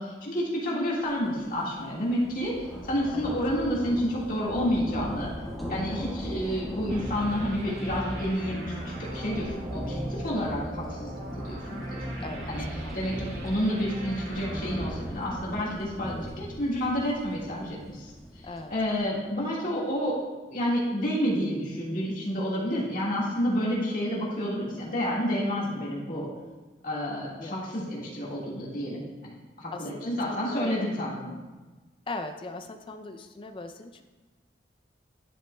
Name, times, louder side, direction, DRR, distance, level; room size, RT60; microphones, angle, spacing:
voice 1, 0.0-5.3 5.7-12.1 12.5-12.7 12.9-20.2 20.5-26.3 26.8-29.3 29.6-31.4, equal, 45° left, -5 dB, 1.7 m, -30 dB
sound 1, 1.2-1.4 1.8-19.0, equal, ahead, 1.4 m, -40 dB
sound 2, 6.9-15.9, right 1 dB, 60° right, 2.1 m, -38 dB
voice 2, 9.5-9.8 12.2-12.5 12.8-13.2 15.0-15.1 18.4-18.7 27.4-27.7 29.7-30.8 32.1-34.0, left 2 dB, 25° left, 6 dB, 0.4 m, -39 dB
10.5 x 8.3 x 2.2 m, 1.2 s
head